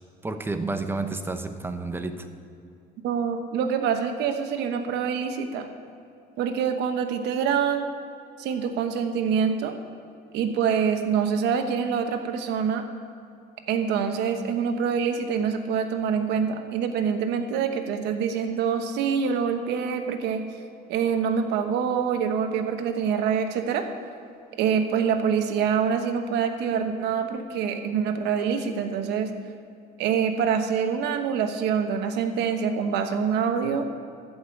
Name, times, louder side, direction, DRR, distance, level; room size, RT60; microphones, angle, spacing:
voice 1, 0.2-2.3, right 3 dB, 15° right, 7 dB, 0.9 m, -30 dB
voice 2, 3.0-5.7 6.4-7.9 8.4-9.7 10.3-12.8 13.7-20.4 20.9-23.8 24.6-29.3 30.0-33.9, right 7 dB, 85° right, 6 dB, 1.1 m, -25 dB
13.5 x 5.7 x 8.3 m, 2.6 s
cardioid pair, 110°, 17 cm